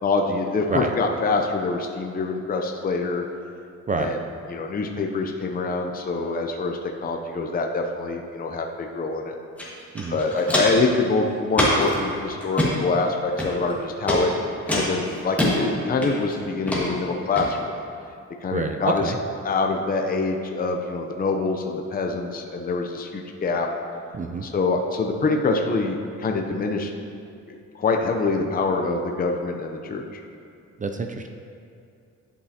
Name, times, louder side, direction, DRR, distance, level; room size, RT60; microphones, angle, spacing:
voice 1, 0.0-3.3 3.9-9.3 10.1-14.3 14.7-17.8 18.4-19.1 19.4-23.7 24.4-26.9 27.5-30.2, left 3 dB, 30° left, 2 dB, 0.6 m, -25 dB
Walk footsteps, 9.6-9.7 9.9-10.9 11.5-11.9 12.4-12.7 13.4-13.7 14.1-14.2 14.7-15.5 16.0-16.3 16.7-16.8 17.4-17.5, left 1 dB, 5° left, 1.7 m, -23 dB
voice 2, 18.5-19.2 24.1-24.5 30.8-31.3, right 4 dB, 25° right, 5 dB, 0.4 m, -27 dB
10.5 x 5.4 x 2.8 m, 2.5 s
cardioid pair, 90°, 30 cm